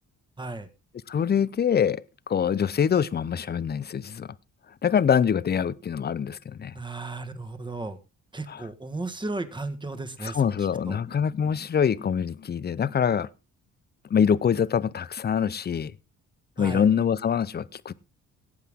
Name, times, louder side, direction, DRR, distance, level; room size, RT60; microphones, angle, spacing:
voice 1, 0.4-0.7 6.7-8.0 8.3-11.0 16.6-16.9, right 2 dB, 15° right, 1.6 m, -35 dB
voice 2, 1.1-4.3 4.8-6.8 8.5-8.6 10.2-13.3 14.1-15.9 16.6-17.9, left 7 dB, 35° left, 0.6 m, -24 dB
18.0 x 8.2 x 3.6 m
cardioid pair, 90°, 30 cm